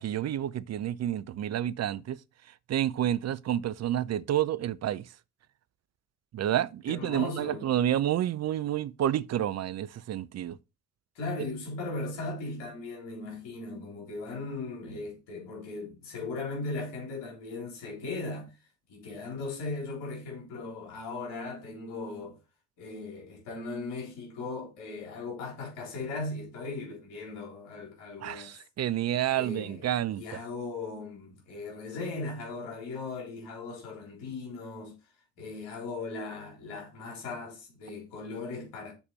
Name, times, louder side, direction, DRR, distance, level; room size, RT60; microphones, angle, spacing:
voice 1, 0.0-2.2 2.7-5.0 6.3-10.6 28.2-30.2, right 11 dB, 45° right, 0.6 m, -29 dB
voice 2, 6.9-7.6 11.2-18.5 18.9-22.4 22.8-28.6 29.3-29.8 30.1-34.9 35.4-38.9, left 3 dB, 80° left, 3.7 m, -38 dB
7.1 x 4.3 x 6.7 m
hypercardioid pair, 50°, 36 cm